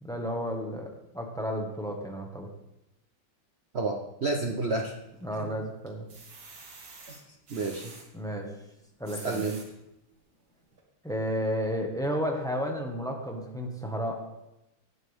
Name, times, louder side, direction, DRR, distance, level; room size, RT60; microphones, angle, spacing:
voice 1, 0.0-2.5 5.2-6.1 8.1-8.5 9.0-9.4 11.0-14.2, equal, ahead, 1 dB, 1.2 m, -32 dB
voice 2, 3.7-4.9 7.1-7.2 7.5-7.9 9.2-9.6, right 3 dB, 80° right, 1 dB, 0.5 m, -30 dB
sound 1, 4.8-5.4 5.9-8.1 8.8-9.7 10.3-10.4 10.7-10.8, right 3 dB, 60° right, 2.6 m, -48 dB
18.0 x 8.1 x 3.6 m, 0.90 s
omnidirectional pair, 2.4 m